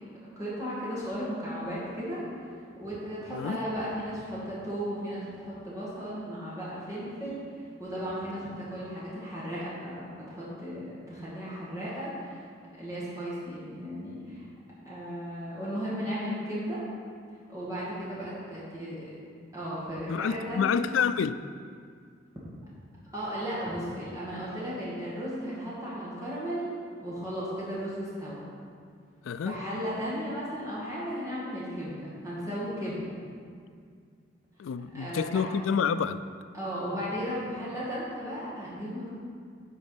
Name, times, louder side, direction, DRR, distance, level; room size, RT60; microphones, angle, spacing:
voice 1, 0.4-2.5 2.8-12.5 12.8-14.4 14.8-16.8 17.5-19.0 19.5-20.8 23.1-26.7 27.0-28.4 29.4-33.2 34.9-35.5 36.5-39.1, equal, 15° right, -9 dB, 2.2 m, -35 dB
voice 2, 3.3-3.6 20.1-21.4 29.2-29.6 34.6-36.2, left 6 dB, 85° left, 13 dB, 0.3 m, -28 dB
9.6 x 5.2 x 5.1 m, 2.1 s
head